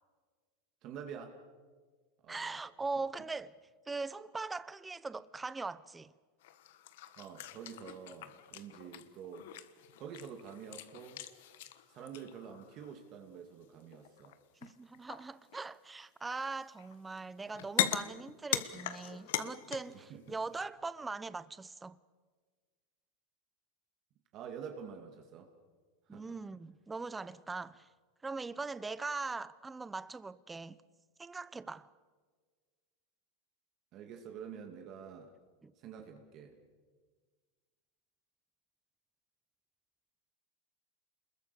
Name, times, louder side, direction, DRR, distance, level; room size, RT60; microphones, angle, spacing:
voice 1, 0.8-1.4 2.2-2.6 7.2-9.5 10.0-11.3 11.9-14.3 19.9-20.4 24.3-25.5 26.1-26.4 33.9-35.3 35.8-36.5, right 7 dB, 40° right, 2.4 m, -47 dB
voice 2, 2.3-3.5 3.9-6.1 14.6-22.0 26.1-27.9 28.2-30.8 31.2-31.9 35.6-35.7, right 3 dB, 10° right, 0.7 m, -41 dB
sound 1, 6.4-13.0 13.9-14.4 14.6-15.8 16.3-17.2 17.5-20.0 20.3-20.6, left 12 dB, 75° left, 1.5 m, -40 dB
28.0 x 21.5 x 7.0 m
supercardioid pair, 150°, 0 cm